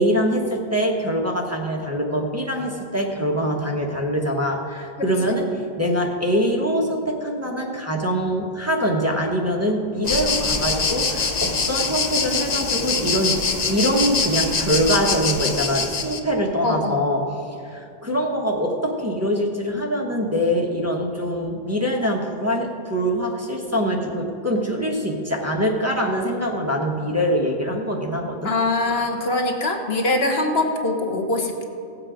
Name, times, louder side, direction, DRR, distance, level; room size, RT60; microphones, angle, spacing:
voice 1, 0.0-5.5 5.8-13.4 13.7-17.2 17.6-28.5, equal, 15° right, -2 dB, 1.1 m, -23 dB
sound 1, 10.0-16.2, left 4 dB, 45° left, 0.8 m, -24 dB
voice 2, 16.6-17.0 28.4-31.7, left 2 dB, 75° left, 3 dB, 1.4 m, -23 dB
17.0 x 7.8 x 5.0 m, 2.6 s
omnidirectional pair, 1.1 m